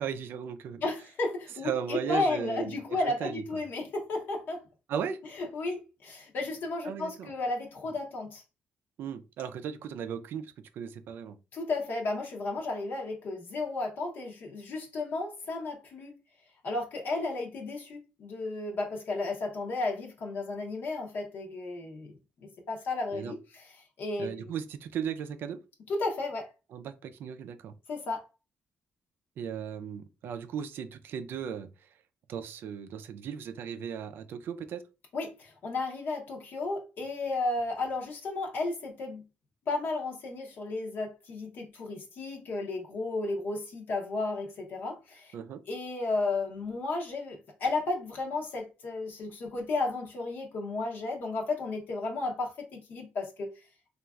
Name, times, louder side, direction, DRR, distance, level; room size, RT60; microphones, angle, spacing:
voice 1, 0.0-0.8 1.6-3.4 4.9-5.2 6.8-7.3 9.0-11.4 23.1-23.3 24.2-25.6 26.7-27.7 29.4-31.7 32.3-34.8 45.3-45.6, right 8 dB, 75° right, 0.4 m, -36 dB
voice 2, 0.8-4.6 5.4-8.4 11.5-16.1 16.6-23.7 24.0-24.5 25.9-26.5 27.9-28.2 35.1-39.2 39.7-45.3 45.7-53.6, left 3 dB, 65° left, 0.7 m, -33 dB
3.1 x 2.4 x 2.3 m
cardioid pair, 110°, 4 cm